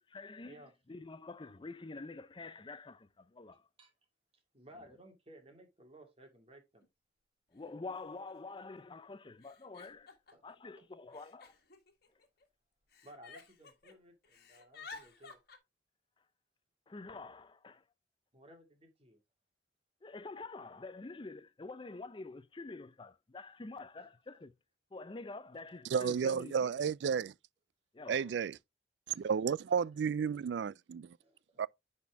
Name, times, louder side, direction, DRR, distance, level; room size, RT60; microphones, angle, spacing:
voice 1, 0.1-0.6 0.9-3.7 7.5-10.1 10.4-11.5 16.9-17.8 20.0-24.5 24.9-26.7 27.9-28.3, left 3 dB, 25° left, 0.5 m, -47 dB
voice 2, 3.5-3.9 4.5-6.9 10.3-10.9 13.0-15.4 18.3-19.2 24.0-24.1 29.1-29.2 31.2-31.6, right 1 dB, 35° right, 2.2 m, -58 dB
Giggle, 6.8-6.9 7.9-8.0 8.3-8.8 9.4-10.5 11.1-12.5 12.9-14.0 14.2-15.6, left 4 dB, 55° left, 1.6 m, -53 dB
voice 3, 25.9-27.3 28.1-28.6 29.2-31.2 31.6-31.7, right 6 dB, 70° right, 0.3 m, -32 dB
10.0 x 4.3 x 3.4 m
head